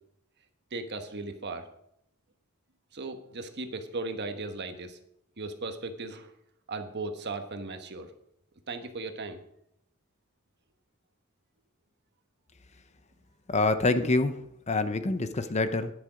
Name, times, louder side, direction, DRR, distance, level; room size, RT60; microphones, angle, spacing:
voice 1, 0.7-1.7 2.9-5.0 5.4-6.3 6.7-8.1 8.7-9.4, right 3 dB, 50° right, 7 dB, 1.3 m, -37 dB
voice 2, 13.5-15.9, left 3 dB, 30° left, 11 dB, 0.7 m, -26 dB
11.5 x 10.5 x 5.0 m, 0.75 s
head